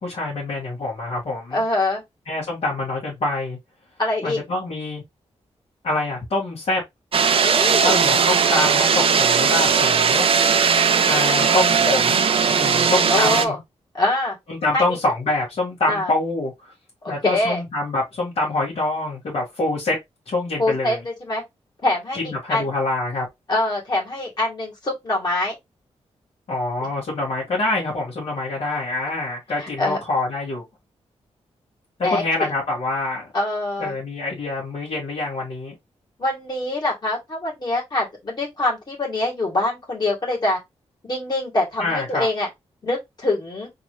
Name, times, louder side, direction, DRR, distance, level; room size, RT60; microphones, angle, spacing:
voice 1, 0.0-1.6 2.3-3.6 4.2-5.0 5.8-6.8 7.8-10.3 11.0-12.3 12.6-13.6 14.5-16.7 17.1-20.0 20.3-21.0 22.1-23.3 26.5-30.6 32.0-33.3 33.8-35.7 41.8-42.3, left 2 dB, 60° left, 2.1 m, -25 dB
voice 2, 1.5-2.0 4.0-4.4 7.4-8.0 11.3-11.6 13.1-13.6 13.9-14.4 14.7-14.8 15.9-16.1 17.0-17.6 20.6-21.4 21.8-22.2 22.5-22.7 23.5-25.6 29.6-30.0 32.0-32.5 33.3-33.9 36.2-40.6 41.0-42.5 42.8-43.7, left 2 dB, 35° left, 2.5 m, -24 dB
sound 1, 7.1-13.4, right 6 dB, 55° right, 0.6 m, -18 dB
3.9 x 3.0 x 3.1 m
wide cardioid pair, 115°, 12 cm